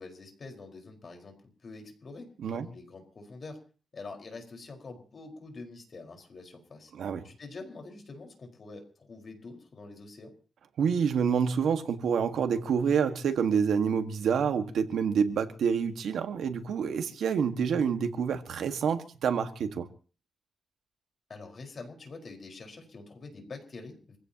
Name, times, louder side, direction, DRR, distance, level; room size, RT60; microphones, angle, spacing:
voice 1, 0.0-2.3 2.5-3.6 3.9-6.9 7.2-10.3 21.3-24.2, left 3 dB, 45° left, 4.7 m, -45 dB
voice 2, 6.9-7.3 10.8-19.9, right 6 dB, 85° right, 1.6 m, -27 dB
26.5 x 16.0 x 2.9 m
wide cardioid pair, 135°, 0 cm